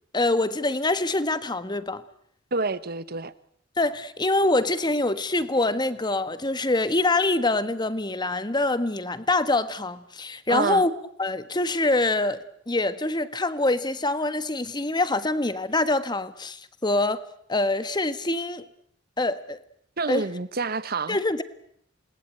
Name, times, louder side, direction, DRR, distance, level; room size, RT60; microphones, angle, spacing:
voice 1, 0.1-2.0 3.8-10.9 11.2-12.4 12.7-17.2 17.5-18.6 19.2-19.6 20.1-20.2 21.1-21.4, left 2 dB, 20° left, 1.5 m, -25 dB
voice 2, 2.5-3.3 10.5-10.8 20.0-21.2, right 3 dB, 50° right, 1.2 m, -28 dB
28.0 x 20.5 x 9.2 m
head